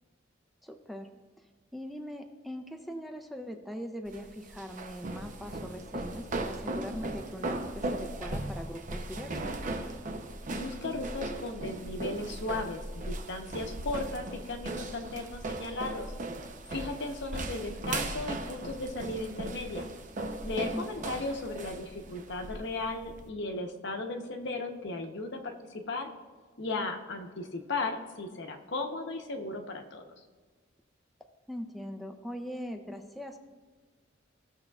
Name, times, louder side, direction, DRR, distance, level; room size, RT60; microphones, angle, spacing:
voice 1, 0.6-1.1 1.7-9.5 20.7-21.1 31.5-33.4, equal, ahead, 5 dB, 0.4 m, -41 dB
sound 1, 4.1-23.3, right 2 dB, 40° right, 0.6 m, -38 dB
voice 2, 10.5-16.1 16.7-19.9 20.4-25.5 25.9-26.1 26.6-30.0, left 2 dB, 65° left, 5 dB, 0.8 m, -36 dB
15.5 x 6.7 x 2.3 m, 1.5 s
head